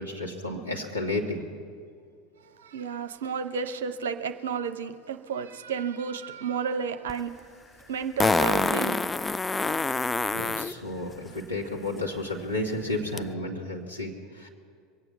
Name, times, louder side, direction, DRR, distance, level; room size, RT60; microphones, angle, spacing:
voice 1, 0.0-1.5 9.7-14.5, left 2 dB, 90° left, -3 dB, 1.9 m, -32 dB
voice 2, 2.4-7.6 7.9-9.0, right 6 dB, 65° right, 9 dB, 0.8 m, -32 dB
Fart, 7.1-7.2 8.2-10.7 13.2-13.3, left 3 dB, 15° left, 0.3 m, -26 dB
23.5 x 8.8 x 6.0 m, 2.2 s
figure-of-eight pair, 75°, 0 cm